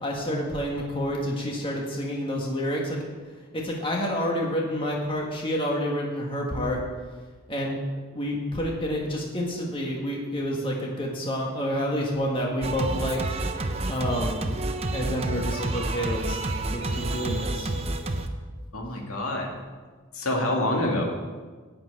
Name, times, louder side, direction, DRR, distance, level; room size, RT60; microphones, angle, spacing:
voice 1, 0.0-3.0 3.5-6.8 7.5-7.8 8.1-13.2 13.5-14.5 14.9-16.4 16.7-17.7, equal, 25° left, -2 dB, 1.7 m, -29 dB
Singing, 12.6-18.3, right 2 dB, 30° right, 0.7 m, -29 dB
voice 2, 18.7-19.5 20.1-21.0, left 1 dB, 85° left, 0 dB, 2.2 m, -26 dB
11.0 x 6.0 x 8.7 m, 1.4 s
head